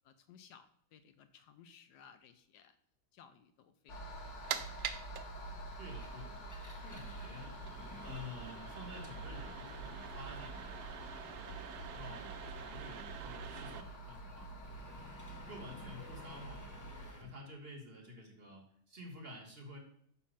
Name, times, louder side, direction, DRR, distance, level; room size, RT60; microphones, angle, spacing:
voice 1, 0.0-2.8 3.1-4.1, left 7 dB, 75° left, 10 dB, 1.1 m, -60 dB
sound 1, 3.9-17.1, right 1 dB, 50° left, 1.2 m, -47 dB
sound 2, 4.1-13.8, right 9 dB, 75° right, 1.1 m, -47 dB
voice 2, 5.8-7.7 8.0-10.9 11.3-14.5 15.4-19.8, left 1 dB, 40° right, 1 dB, 1.3 m, -51 dB
Engine, 5.9-17.4, left 1 dB, 20° left, 0.5 m, -56 dB
5.6 x 4.2 x 6.2 m, 0.65 s
omnidirectional pair, 1.8 m